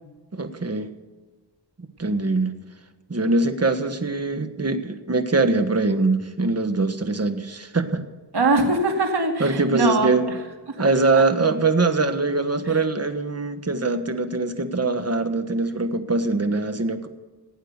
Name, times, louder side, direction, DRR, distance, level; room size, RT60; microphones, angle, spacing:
voice 1, 0.3-0.9 2.0-2.5 3.1-8.0 9.4-10.2 10.8-17.1, right 3 dB, 35° right, 9 dB, 1.4 m, -22 dB
voice 2, 8.3-10.3 12.7-12.8, right 3 dB, 65° right, 3 dB, 2.4 m, -22 dB
17.0 x 8.9 x 6.7 m, 1.3 s
cardioid pair, 55°, 42 cm